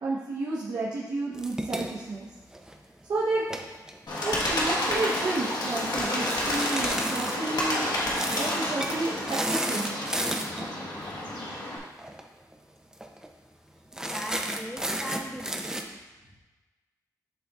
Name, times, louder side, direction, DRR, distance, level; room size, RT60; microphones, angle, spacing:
voice 1, 0.0-2.3 3.1-3.4 4.2-7.8 8.3-10.0, right 2 dB, 75° right, -7 dB, 1.0 m, -31 dB
sound 1, 1.3-2.9 3.4-4.9 6.2-7.4 8.1-8.5 8.8-9.0 9.3-10.7 12.0-12.2 12.5-12.6 12.9-13.3 13.9-15.8, right 1 dB, 10° right, 0.6 m, -33 dB
Bird, 4.1-11.8, left 1 dB, 75° left, 1.4 m, -30 dB
voice 2, 14.0-15.9, equal, 5° left, -4 dB, 1.5 m, -39 dB
10.5 x 3.9 x 2.4 m, 1.2 s
cardioid pair, 80°, 7 cm